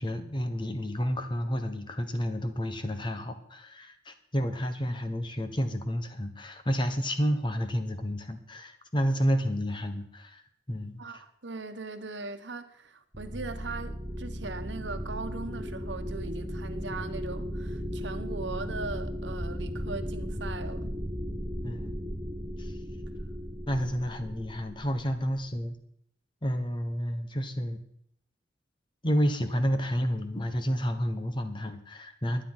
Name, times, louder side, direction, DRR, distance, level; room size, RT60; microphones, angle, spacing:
voice 1, 0.0-10.4 10.7-11.0 21.6-21.9 22.6-22.7 23.7-25.8 26.4-27.8 29.0-32.4, equal, 25° left, 1.2 m, -30 dB
voice 2, 11.0-20.9, right 3 dB, 85° right, 1.1 m, -39 dB
sound 1, 13.1-25.4, equal, 10° right, 1.1 m, -36 dB
sound 2, 14.6-22.0, equal, 45° left, 4.0 m, -50 dB
11.5 x 10.0 x 5.7 m
head